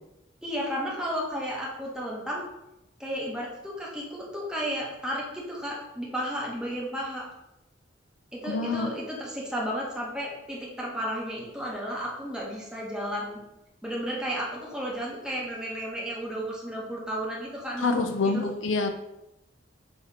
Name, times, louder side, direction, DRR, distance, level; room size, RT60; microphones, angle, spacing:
voice 1, 0.4-2.4 3.0-7.3 8.3-13.4 13.8-18.4, equal, 5° right, -4 dB, 1.4 m, -33 dB
voice 2, 8.5-8.9 17.8-18.9, left 3 dB, 90° left, 7 dB, 0.6 m, -26 dB
7.1 x 3.4 x 4.2 m, 0.90 s
head